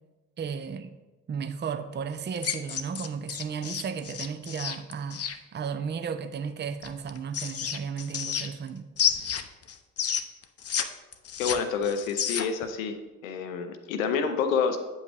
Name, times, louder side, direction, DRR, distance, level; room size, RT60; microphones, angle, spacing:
voice 1, 0.4-1.0 1.3-5.2 5.5-8.9, right 6 dB, 30° right, 0.5 m, -34 dB
sound 1, 2.4-5.4 6.8-8.7 9.0-10.8 11.1-12.6, left 8 dB, 40° left, 0.6 m, -30 dB
voice 2, 11.4-13.0 13.2-14.8, left 6 dB, 90° left, 0.6 m, -28 dB
8.2 x 5.2 x 3.3 m
hypercardioid pair, 40°, 39 cm